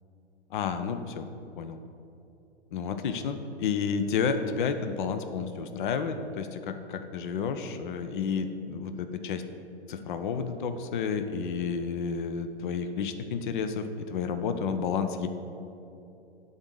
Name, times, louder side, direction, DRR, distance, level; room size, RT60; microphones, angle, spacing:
voice 1, 0.5-1.3 1.6-1.8 2.7-9.4 9.9-15.3, left 6 dB, 45° left, 9 dB, 0.7 m, -31 dB
11.5 x 4.0 x 6.3 m, 2.8 s
figure-of-eight pair, 115°, 34 cm